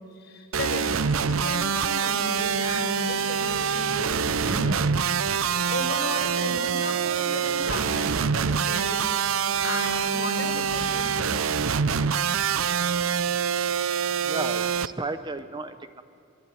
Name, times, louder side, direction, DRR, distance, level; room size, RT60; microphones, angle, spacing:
voice 1, 0.1-4.9 5.7-9.1 9.4-11.6, left 2 dB, 55° left, 1 dB, 5.3 m, -35 dB
sound 1, 0.5-14.9, right 6 dB, 90° right, 0.7 m, -25 dB
voice 2, 14.2-16.0, right 2 dB, 20° right, 10 dB, 0.8 m, -33 dB
23.5 x 22.5 x 9.2 m, 2.6 s
head